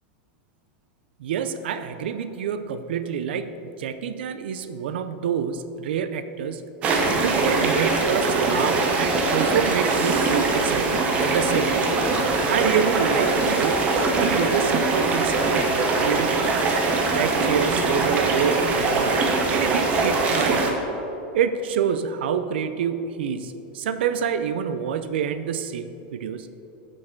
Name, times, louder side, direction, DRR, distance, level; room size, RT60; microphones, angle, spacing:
voice 1, 1.2-6.7 7.2-11.9 12.5-13.8 14.2-16.6 17.1-19.2 19.5-20.7 21.3-26.5, right 7 dB, 80° right, 11 dB, 0.5 m, -27 dB
sound 1, 6.8-20.7, right 3 dB, 20° right, 0.6 m, -22 dB
6.6 x 6.1 x 4.5 m, 3.0 s
supercardioid pair, 170°, 6 cm